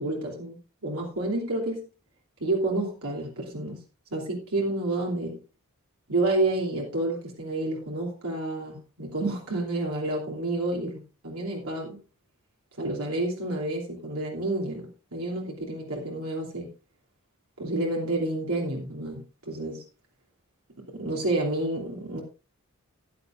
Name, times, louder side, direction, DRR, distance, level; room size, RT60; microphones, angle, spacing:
voice 1, 0.0-1.9 2.4-3.8 4.1-5.4 6.1-12.0 12.8-16.7 17.6-19.8 20.9-22.2, right 2 dB, 80° right, -1 dB, 3.0 m, -29 dB
15.0 x 10.0 x 2.5 m, 0.33 s
head